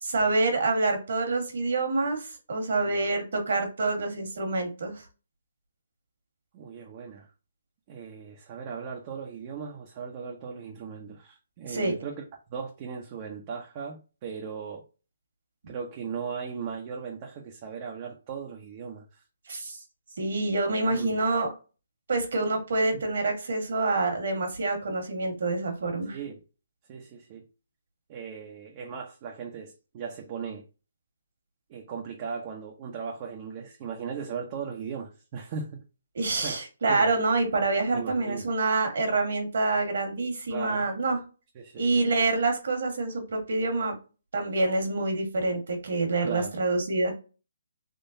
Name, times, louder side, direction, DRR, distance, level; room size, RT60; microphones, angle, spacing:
voice 1, 0.0-5.0 11.7-11.9 19.5-19.8 20.2-21.5 22.1-26.2 36.1-41.2 41.8-43.9 44.3-47.1, right 3 dB, 65° right, 1.7 m, -27 dB
voice 2, 6.5-7.3 7.9-12.2 12.5-14.9 15.7-19.2 20.9-21.2 22.9-23.0 26.1-26.4 26.9-27.5 28.1-30.6 31.7-35.8 36.4-36.6 36.9-37.1 37.9-38.5 40.5-40.9 41.5-42.1 46.2-46.5, right 6 dB, 30° right, 0.7 m, -38 dB
3.7 x 3.3 x 2.7 m
hypercardioid pair, 160°, 0 cm